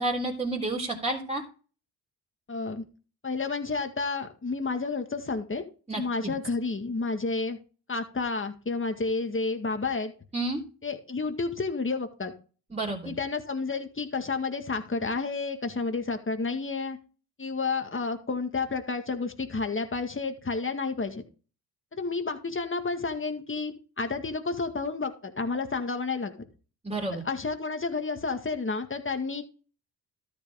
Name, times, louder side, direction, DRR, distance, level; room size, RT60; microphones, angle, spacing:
voice 1, 0.0-1.4 5.9-6.3 10.3-10.6 12.7-13.1 26.8-27.2, right 2 dB, 15° right, -1 dB, 3.5 m, -30 dB
voice 2, 2.5-2.8 3.2-5.6 6.0-7.6 7.9-10.1 10.8-12.3 13.1-17.0 17.4-21.2 22.0-26.3 27.1-29.4, left 4 dB, 25° left, 6 dB, 1.9 m, -30 dB
13.0 x 5.3 x 3.6 m, 0.36 s
hypercardioid pair, 50°, 47 cm